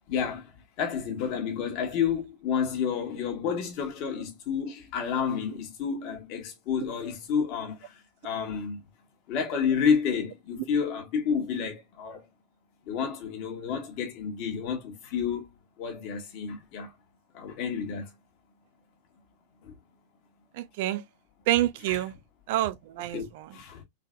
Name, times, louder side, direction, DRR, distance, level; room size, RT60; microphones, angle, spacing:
voice 1, 0.1-0.5 0.8-8.0 8.2-8.8 9.3-12.3 12.9-15.5 15.8-16.9 17.3-18.1 19.6-19.8 21.9-22.0 23.1-23.8, left 7 dB, 40° left, 1.8 m, -30 dB
voice 2, 20.5-21.0 21.5-22.1 22.5-23.5, right 15 dB, 50° right, 0.5 m, -28 dB
4.1 x 4.0 x 2.5 m
figure-of-eight pair, 90°, 0 cm